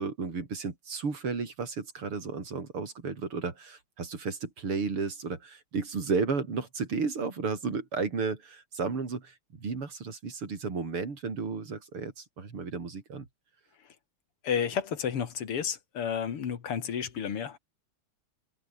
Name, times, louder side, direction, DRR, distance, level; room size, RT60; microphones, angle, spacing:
voice 1, 0.0-13.3, right 4 dB, 75° right, 4.7 m, -33 dB
voice 2, 14.4-17.6, left 7 dB, 90° left, 3.0 m, -31 dB
omnidirectional pair, 2.4 m